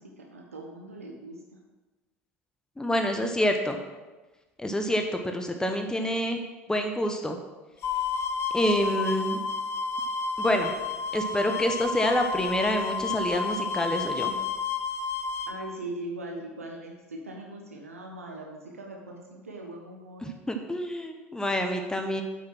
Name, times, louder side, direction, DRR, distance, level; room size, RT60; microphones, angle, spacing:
voice 1, 0.0-1.4 15.5-20.3, right 1 dB, 85° right, 0 dB, 1.1 m, -40 dB
voice 2, 2.8-3.8 4.6-6.4 6.7-7.4 8.5-9.4 10.4-10.7 11.1-14.4 20.2-22.2, equal, 10° left, 4 dB, 1.0 m, -27 dB
sound 1, 7.8-15.5, left 5 dB, 35° left, 0.9 m, -31 dB
7.9 x 6.6 x 6.1 m, 1.2 s
figure-of-eight pair, 70°, 7 cm